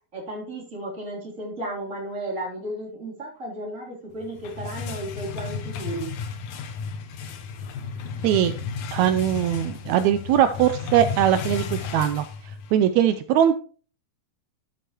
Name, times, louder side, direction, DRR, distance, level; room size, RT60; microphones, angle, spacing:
voice 1, 0.1-6.2, right 1 dB, 25° right, -3 dB, 3.6 m, -34 dB
sound 1, 4.2-12.9, left 6 dB, 80° left, 2.4 m, -33 dB
voice 2, 8.2-8.6 8.9-13.6, right 10 dB, 80° right, 10 dB, 1.9 m, -21 dB
12.5 x 8.4 x 3.0 m, 0.39 s
omnidirectional pair, 3.4 m